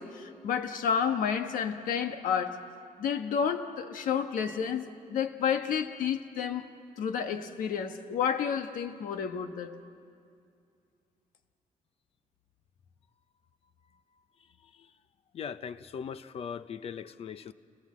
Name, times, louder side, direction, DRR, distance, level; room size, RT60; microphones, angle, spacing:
voice 1, 0.0-2.6 3.0-6.7 7.0-9.8, left 7 dB, 90° left, 7 dB, 1.4 m, -30 dB
voice 2, 15.3-17.5, left 7 dB, 45° left, 13 dB, 0.7 m, -39 dB
29.5 x 20.0 x 7.5 m, 2.4 s
cardioid pair, 160°, 14 cm